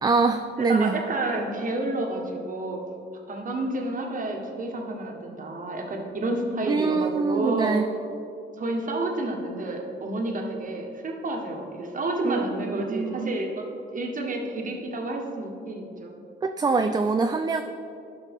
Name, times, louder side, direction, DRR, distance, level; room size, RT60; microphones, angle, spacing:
voice 1, 0.0-1.0 6.7-7.9 12.2-13.3 16.4-17.6, right 4 dB, 20° right, 7 dB, 0.3 m, -24 dB
voice 2, 0.5-2.8 3.3-7.8 8.6-13.6 13.9-16.1, right 2 dB, 40° right, 1 dB, 1.3 m, -30 dB
11.5 x 5.9 x 3.6 m, 2.6 s
cardioid pair, 90°, 20 cm